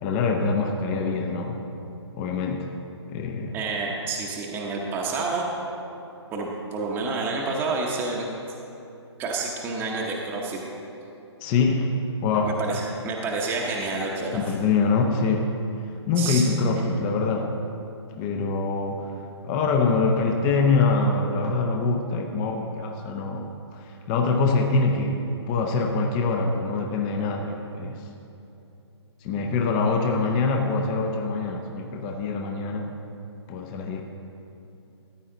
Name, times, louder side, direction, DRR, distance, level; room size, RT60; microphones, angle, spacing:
voice 1, 0.0-1.6 2.1-2.7 3.1-3.5 11.4-11.9 12.2-12.6 14.3-15.5 16.1-17.5 18.2-19.1 19.4-28.0 29.2-32.9 33.5-34.0, left 4 dB, 20° left, 2 dB, 0.6 m, -24 dB
voice 2, 3.5-5.5 6.3-8.3 9.2-10.6 12.4-14.4 16.2-16.4, right 3 dB, 15° right, -2 dB, 0.9 m, -29 dB
14.0 x 8.8 x 3.8 m, 2.8 s
hypercardioid pair, 150°, 15 cm